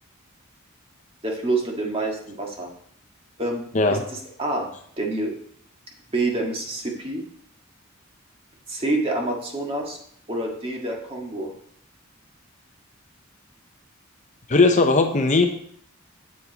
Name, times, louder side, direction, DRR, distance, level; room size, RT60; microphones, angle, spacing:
voice 1, 1.2-2.7 3.4-3.6 3.9-4.7 5.0-5.3 6.1-7.2 8.7-10.0 10.3-11.5, right 2 dB, 30° right, 0 dB, 1.7 m, -27 dB
voice 2, 14.5-15.5, left 3 dB, 35° left, 6 dB, 0.7 m, -18 dB
8.5 x 7.4 x 4.0 m, 0.64 s
head